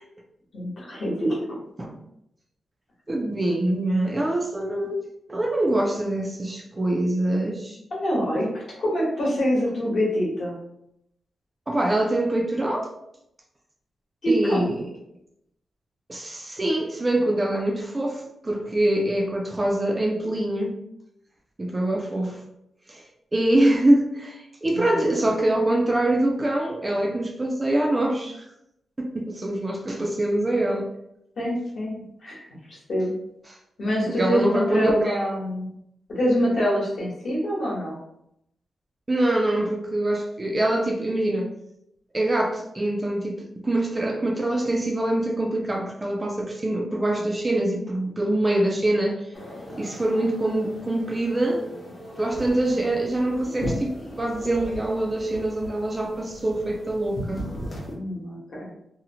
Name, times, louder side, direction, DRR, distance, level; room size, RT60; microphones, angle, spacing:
voice 1, 0.5-1.6 7.9-8.5 8.8-10.6 14.2-14.7 24.7-25.2 31.4-32.4 32.7-33.1 33.8-35.7 36.1-38.0 57.9-58.7, equal, 60° left, -4 dB, 1.0 m, -25 dB
voice 2, 3.1-7.8 11.7-12.9 14.3-14.9 16.1-20.8 21.6-22.4 22.9-23.0 23.3-28.5 29.0-30.9 33.5-33.6 34.1-35.2 39.1-41.5 42.1-49.2 49.8-51.7 52.2-57.4, right 1 dB, 20° right, 1 dB, 0.3 m, -24 dB
sound 1, 49.3-57.9, equal, 40° left, 0.7 m, -37 dB
2.7 x 2.0 x 2.7 m, 0.78 s
wide cardioid pair, 145°, 0 cm